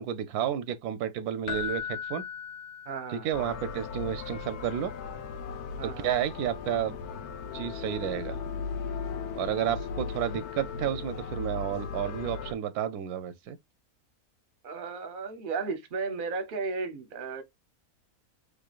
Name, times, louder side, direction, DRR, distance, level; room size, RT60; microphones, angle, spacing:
voice 1, 0.0-2.2 3.1-4.9 5.8-6.9 7.5-8.4 9.3-13.6, right 10 dB, 85° right, 1.1 m, -31 dB
Keyboard (musical), 1.5-3.4 6.7-6.8, left 8 dB, 70° left, 0.6 m, -37 dB
voice 2, 2.9-3.3 5.8-6.1 14.6-17.4, right 4 dB, 50° right, 0.7 m, -34 dB
sound 1, 3.3-12.5, left 5 dB, 90° left, 1.2 m, -37 dB
3.6 x 3.3 x 2.3 m
omnidirectional pair, 1.6 m